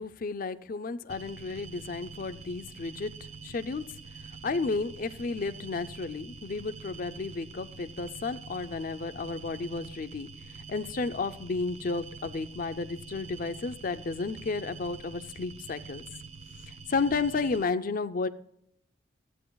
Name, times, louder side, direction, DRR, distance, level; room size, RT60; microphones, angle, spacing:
voice 1, 0.0-3.1 3.4-3.8 4.4-16.1 16.9-18.3, left 4 dB, 45° left, 11 dB, 0.4 m, -32 dB
sound 1, 1.1-17.7, right 5 dB, 35° right, 0.4 m, -46 dB
13.5 x 8.4 x 2.3 m, 0.76 s
head